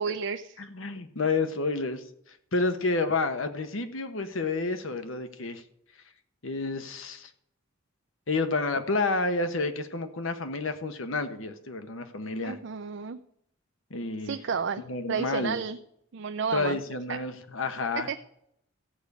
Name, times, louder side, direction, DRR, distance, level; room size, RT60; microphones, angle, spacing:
voice 1, 0.0-0.6 12.4-13.2 14.2-15.8 16.1-16.8 17.1-17.2 18.1-18.2, right 5 dB, 60° right, 8 dB, 0.5 m, -31 dB
voice 2, 0.6-2.0 2.5-5.6 6.4-7.3 8.3-12.6 13.9-14.4 14.8-15.6 16.5-18.1, left 3 dB, 75° left, 9 dB, 1.1 m, -30 dB
14.0 x 5.1 x 8.3 m, 0.73 s
head